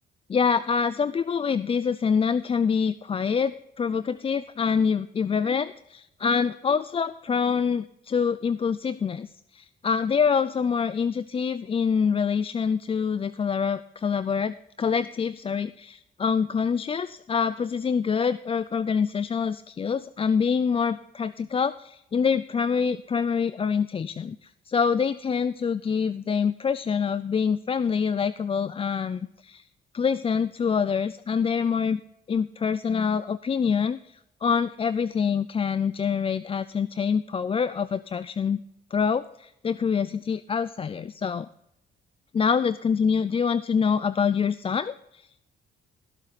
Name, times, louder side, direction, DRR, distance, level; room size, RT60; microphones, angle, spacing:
voice 1, 0.3-29.6 29.9-32.0 32.3-38.6 38.9-41.5 42.3-45.2, left 6 dB, 30° left, 15 dB, 0.4 m, -26 dB
16.5 x 7.2 x 4.0 m, 0.82 s
cardioid pair, 90°, 20 cm